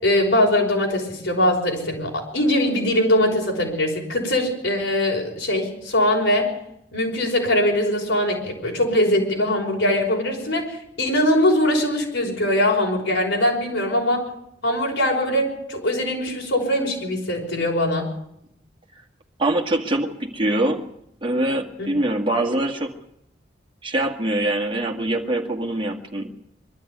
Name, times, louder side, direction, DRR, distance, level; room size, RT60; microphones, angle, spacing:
voice 1, 0.0-6.5 6.9-14.3 14.6-18.1 21.8-21.9, left 1 dB, 80° left, 1 dB, 5.6 m, -21 dB
voice 2, 19.4-20.9 21.2-22.9 23.8-26.3, right 1 dB, 25° right, 2 dB, 2.0 m, -23 dB
23.0 x 12.5 x 9.5 m, 0.77 s
head